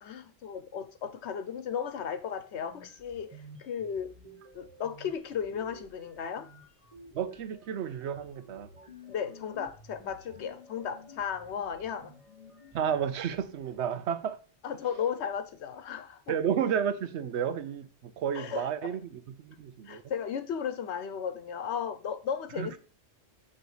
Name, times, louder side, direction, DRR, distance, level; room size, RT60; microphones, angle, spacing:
voice 1, 0.0-4.1 4.5-6.5 9.1-12.1 14.6-16.3 18.3-18.9 19.8-22.8, left 7 dB, 80° left, 1.0 m, -35 dB
sound 1, 2.2-2.3 2.6-13.8, left 1 dB, 30° right, 2.0 m, -53 dB
voice 2, 7.1-8.7 12.7-14.4 16.3-20.0 22.6-22.7, right 8 dB, 85° right, 0.9 m, -32 dB
7.8 x 3.2 x 4.8 m
omnidirectional pair, 1.1 m